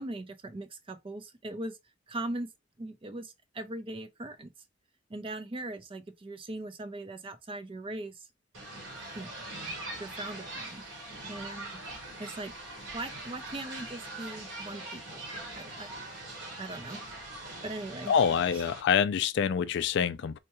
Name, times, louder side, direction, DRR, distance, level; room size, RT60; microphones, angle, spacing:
voice 1, 0.0-1.8 2.1-2.5 2.8-4.5 5.1-8.3 9.1-9.3 10.0-10.8 11.3-11.8 12.2-12.5 12.9-15.2 15.5-15.9 16.6-17.0 17.6-18.1 18.5-18.6, right 2 dB, 30° right, 0.5 m, -40 dB
sound 1, 8.5-18.8, right 2 dB, 80° right, 1.6 m, -42 dB
voice 2, 18.1-20.4, left 7 dB, 65° left, 0.3 m, -26 dB
4.5 x 2.2 x 2.9 m
head